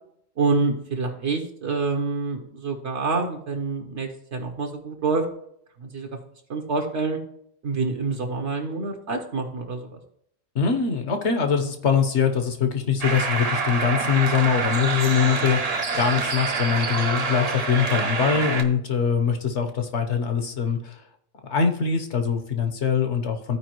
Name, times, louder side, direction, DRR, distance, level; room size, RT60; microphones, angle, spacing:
voice 1, 0.4-5.2 5.8-6.1 6.5-7.2 7.6-10.0, right 4 dB, 65° right, 3 dB, 1.3 m, -27 dB
voice 2, 10.5-21.0 21.5-23.6, left 6 dB, 65° left, 5 dB, 1.2 m, -23 dB
sound 1, 13.0-18.6, right 4 dB, 40° right, 0.7 m, -26 dB
14.0 x 4.8 x 3.0 m, 0.69 s
omnidirectional pair, 1.3 m